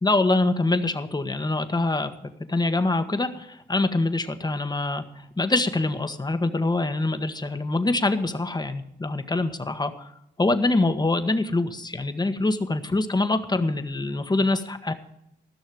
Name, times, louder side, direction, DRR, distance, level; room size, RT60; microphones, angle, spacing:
voice 1, 0.0-10.1 10.4-14.9, left 2 dB, 25° left, 8 dB, 1.4 m, -25 dB
15.0 x 6.4 x 7.7 m, 0.81 s
cardioid pair, 70°, 18 cm